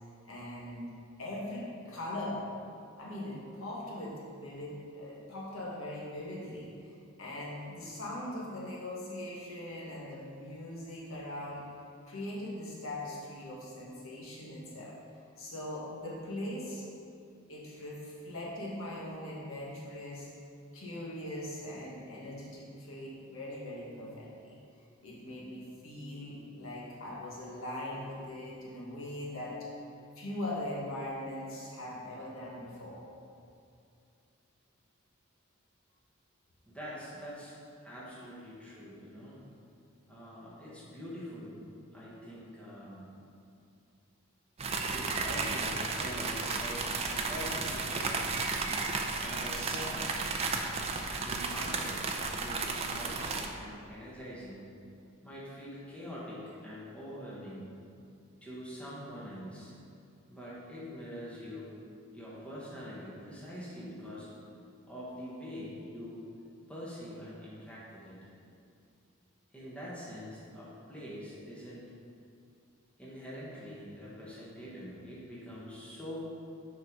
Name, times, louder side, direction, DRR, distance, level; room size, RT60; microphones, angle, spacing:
voice 1, 0.2-0.9 1.2-2.4 3.0-11.7 12.1-14.9 15.4-16.8 17.5-20.3 20.7-24.5 25.0-29.6 30.1-33.0, left 1 dB, 75° left, -5 dB, 1.5 m, -41 dB
voice 2, 36.7-37.6 37.8-39.4 40.1-41.6 41.9-43.1 44.9-47.0 47.3-48.7 49.2-50.3 51.2-52.0 52.4-54.7 55.2-57.7 58.4-59.7 60.3-61.7 62.1-64.3 64.9-66.2 66.7-68.2 69.5-71.8 73.0-76.3, equal, 5° left, -7 dB, 1.2 m, -44 dB
sound 1, 44.6-53.5, right 4 dB, 30° right, 0.4 m, -33 dB
6.7 x 4.6 x 5.1 m, 2.5 s
head